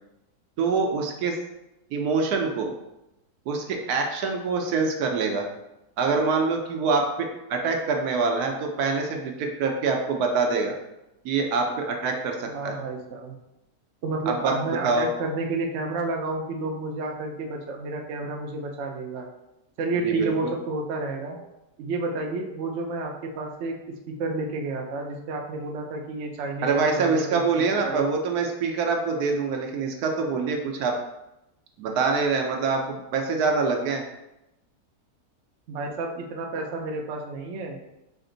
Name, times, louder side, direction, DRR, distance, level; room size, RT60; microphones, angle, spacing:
voice 1, 0.6-1.3 1.9-2.7 3.5-5.5 6.0-10.8 11.2-12.7 14.3-15.1 20.0-20.5 26.6-30.9 31.8-34.0, right 4 dB, 75° right, 2 dB, 1.1 m, -25 dB
voice 2, 12.4-13.4 14.0-19.3 19.8-21.4 21.8-23.8 24.1-27.4 27.7-28.1 35.7-37.8, right 3 dB, 60° right, 1 dB, 0.8 m, -30 dB
5.0 x 2.5 x 3.8 m, 0.92 s
omnidirectional pair, 1.7 m